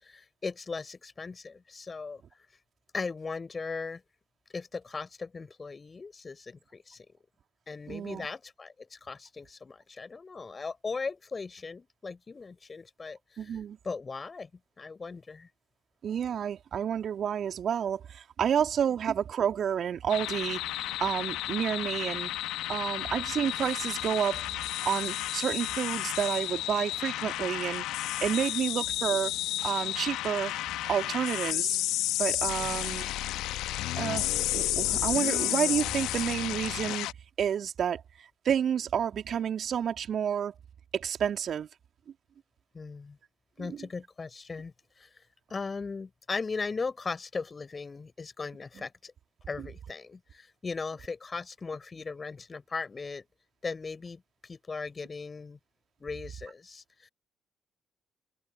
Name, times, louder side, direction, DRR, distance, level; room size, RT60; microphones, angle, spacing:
voice 1, 0.0-2.2 2.9-4.0 4.5-7.1 7.7-13.6 13.8-14.5 14.8-15.5 32.6-32.7 42.7-43.2 43.6-45.1 45.5-49.1 49.5-53.2 53.6-55.6 56.0-57.1, left 4 dB, 35° left, 5.7 m, -38 dB
voice 2, 7.9-8.3 13.4-13.8 16.0-22.3 22.7-24.4 24.8-27.8 28.2-29.3 29.6-30.5 30.9-31.8 32.2-33.1 33.9-37.1 37.4-40.5 40.9-41.7 43.6-43.8 49.6-49.7, right 8 dB, 55° right, 2.9 m, -30 dB
sound 1, 20.1-37.1, left 15 dB, 70° left, 1.3 m, -32 dB
hypercardioid pair, 45°, 0 cm